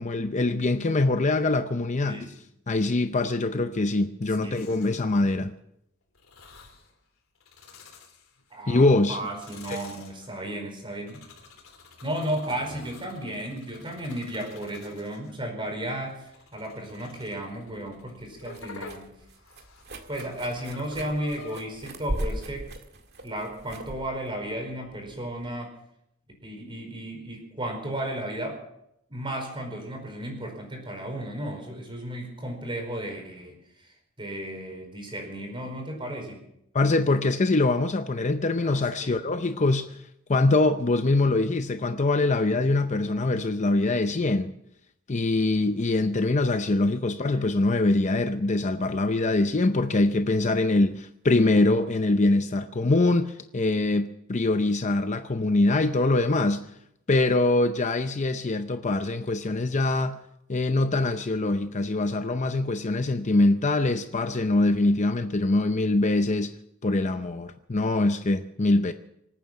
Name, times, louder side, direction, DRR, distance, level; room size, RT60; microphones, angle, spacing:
voice 1, 0.0-2.2 2.7-5.5 8.7-9.2 9.7-9.8 36.7-40.0 40.3-44.5 45.1-56.7 57.1-60.2 60.5-66.5 66.8-68.9, left 2 dB, 35° left, 0.6 m, -23 dB
sound 1, 4.5-5.2 6.2-6.9 7.4-8.6 9.1-15.3 15.9-21.6, left 3 dB, 75° left, 3.4 m, -49 dB
voice 2, 8.5-11.2 12.0-19.1 20.1-22.7 23.2-25.7 26.4-28.6 29.1-36.4 38.6-39.2 47.3-47.4, right 1 dB, 25° right, 4.8 m, -34 dB
sound 2, 17.7-25.5, right 1 dB, 50° right, 1.9 m, -38 dB
25.5 x 9.3 x 5.9 m
head